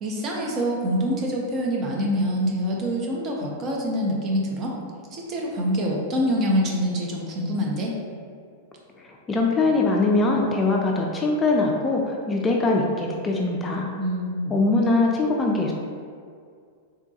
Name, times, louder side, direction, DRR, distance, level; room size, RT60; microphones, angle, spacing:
voice 1, 0.0-4.7 5.1-7.9 14.0-14.6, equal, 35° right, -2 dB, 0.6 m, -25 dB
voice 2, 9.0-13.9 14.5-15.7, left 3 dB, 20° left, 0 dB, 0.3 m, -22 dB
3.6 x 2.2 x 2.7 m, 2.2 s
figure-of-eight pair, 100°, 0 cm